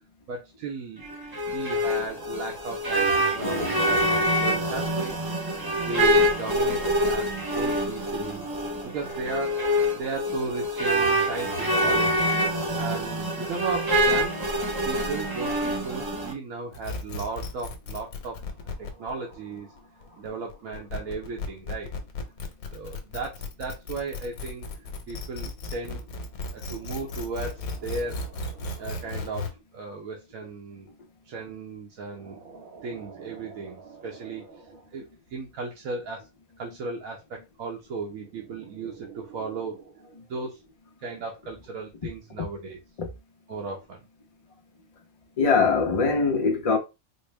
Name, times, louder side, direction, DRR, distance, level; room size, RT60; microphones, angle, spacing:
voice 1, 0.3-1.1 1.4-5.1 5.8-14.4 14.8-18.4 18.8-21.9 22.7-24.7 25.1-26.1 26.5-30.9 31.2-36.2 36.6-40.6 41.0-42.8 43.5-44.0, right 4 dB, 75° right, 1.1 m, -36 dB
sound 1, 1.0-16.3, equal, 35° right, 0.3 m, -25 dB
voice 2, 3.4-4.0 43.0-43.1 45.4-46.8, left 4 dB, 40° left, 0.5 m, -23 dB
sound 2, 16.7-29.5, left 3 dB, 85° left, 1.3 m, -35 dB
4.3 x 2.1 x 3.2 m
omnidirectional pair, 1.5 m